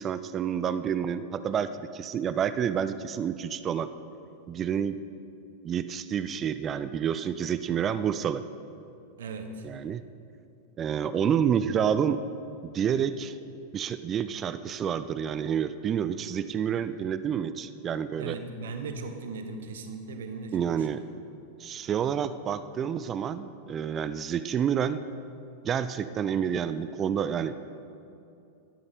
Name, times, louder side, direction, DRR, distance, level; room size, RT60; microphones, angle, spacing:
voice 1, 0.0-3.9 4.5-5.0 5.6-8.4 9.6-10.0 10.8-12.2 12.6-13.3 13.7-18.3 20.5-21.0 21.6-25.0 25.6-27.5, right 8 dB, 25° right, 13 dB, 0.4 m, -29 dB
voice 2, 9.2-9.7 18.2-21.0, right 3 dB, 60° right, 7 dB, 1.1 m, -38 dB
13.0 x 11.5 x 5.1 m, 2.6 s
figure-of-eight pair, 90°, 0 cm